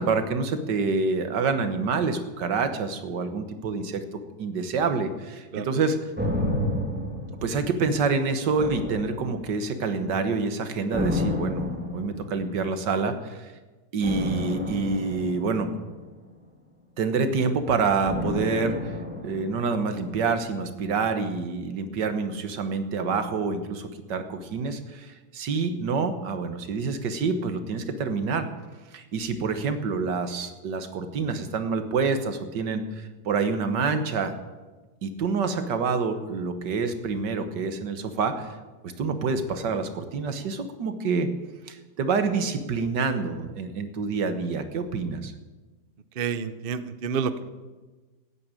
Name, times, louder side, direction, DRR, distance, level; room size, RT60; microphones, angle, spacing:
voice 1, 0.0-4.0 4.4-6.1 7.4-13.5 13.9-15.7 17.0-19.0 19.2-28.5 28.9-34.3 35.0-38.5 38.8-41.3 41.7-45.3, right 4 dB, 70° right, 9 dB, 1.9 m, -27 dB
sound 1, 6.2-8.1 8.6-9.8 10.9-12.6 14.0-16.4 18.0-20.2 20.5-20.6, left 2 dB, 5° right, 1.9 m, -31 dB
voice 2, 46.2-47.5, right 6 dB, 55° right, 12 dB, 0.6 m, -29 dB
14.0 x 9.9 x 8.9 m, 1.3 s
omnidirectional pair, 1.9 m